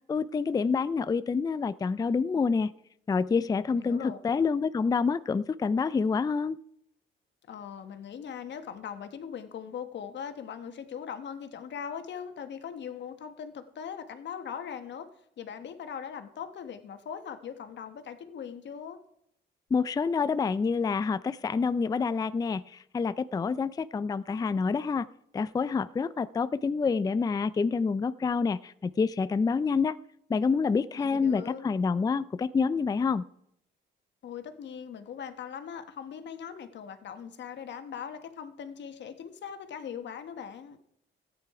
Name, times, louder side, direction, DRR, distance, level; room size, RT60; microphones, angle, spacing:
voice 1, 0.1-2.7 3.1-6.6 19.7-25.1 25.3-30.0 30.3-33.2, left 5 dB, 20° left, 16 dB, 0.4 m, -27 dB
voice 2, 3.7-4.2 7.5-15.1 15.4-19.0 30.9-31.6 34.2-40.8, left 7 dB, 65° left, 9 dB, 1.3 m, -40 dB
13.5 x 9.0 x 4.8 m, 0.75 s
cardioid pair, 90°, 20 cm